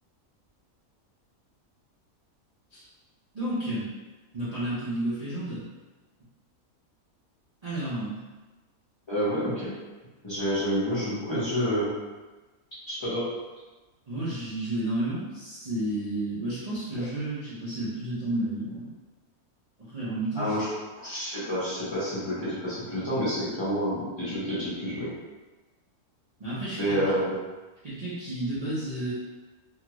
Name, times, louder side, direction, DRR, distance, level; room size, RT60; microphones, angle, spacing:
voice 1, 3.3-3.9 4.3-5.7 7.6-8.2 14.1-18.9 19.9-20.6 26.4-27.0 27.8-29.1, right 1 dB, 45° right, -11 dB, 0.5 m, -31 dB
voice 2, 9.1-9.7 10.2-11.9 12.9-13.3 20.4-20.7 21.0-25.1 26.8-27.3, equal, 20° left, -12 dB, 0.9 m, -28 dB
2.8 x 2.4 x 2.9 m, 1.2 s
omnidirectional pair, 1.6 m